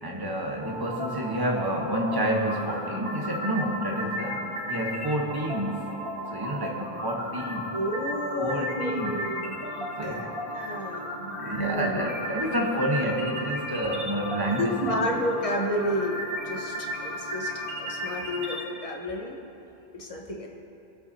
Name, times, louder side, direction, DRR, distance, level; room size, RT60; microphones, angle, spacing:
voice 1, 0.0-6.0 6.3-7.7 8.4-9.3 10.0-10.3 11.4-15.0, right 1 dB, 20° right, -1 dB, 1.3 m, -29 dB
sound 1, 0.6-18.6, equal, 60° right, 2.0 m, -35 dB
voice 2, 7.7-12.0 12.7-12.8 14.6-17.5 17.8-19.4 19.9-20.5, equal, 35° left, 0 dB, 1.3 m, -31 dB
23.5 x 8.2 x 2.8 m, 2.8 s
omnidirectional pair, 1.0 m